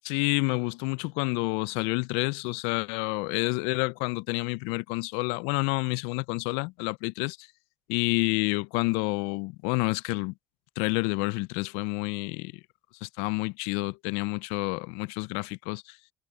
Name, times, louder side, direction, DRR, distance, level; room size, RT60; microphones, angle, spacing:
voice 1, 0.0-7.5 7.9-10.3 10.8-12.5 13.0-16.0, left 28 dB, 80° left, 0.4 m, -29 dB
hypercardioid pair, 65°, 10 cm